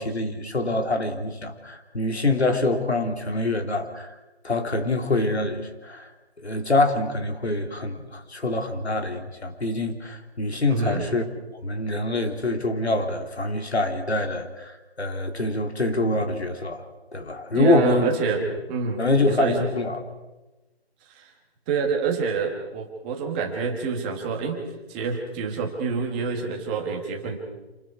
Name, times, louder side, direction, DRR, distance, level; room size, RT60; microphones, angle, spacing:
voice 1, 0.0-4.1 4.4-6.1 6.4-11.2 11.6-16.9 17.1-18.1 19.0-20.0, left 2 dB, 90° left, 5 dB, 3.2 m, -25 dB
voice 2, 10.7-11.0 17.5-19.7 21.1-21.2 21.7-24.6 24.9-27.4, right 5 dB, 10° right, 1 dB, 1.3 m, -27 dB
27.5 x 20.0 x 4.8 m, 1.1 s
figure-of-eight pair, 165°, 32 cm